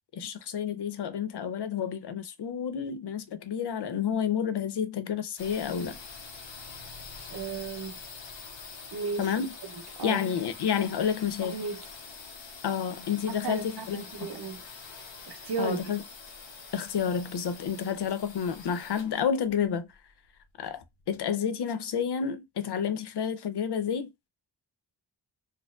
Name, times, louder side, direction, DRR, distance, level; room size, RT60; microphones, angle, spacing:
voice 1, 0.1-6.0 9.2-9.5 10.0-11.5 12.6-14.0 15.6-16.0 16.7-19.9 20.6-24.1, left 7 dB, 65° left, 0.5 m, -30 dB
sound 1, 5.4-21.0, left 5 dB, 80° left, 0.9 m, -45 dB
voice 2, 7.3-8.0 8.9-9.3 9.7-10.2 11.4-11.8 13.3-14.6 15.3-15.9, right 5 dB, 60° right, 0.7 m, -35 dB
4.2 x 2.5 x 2.3 m
wide cardioid pair, 115°, 44 cm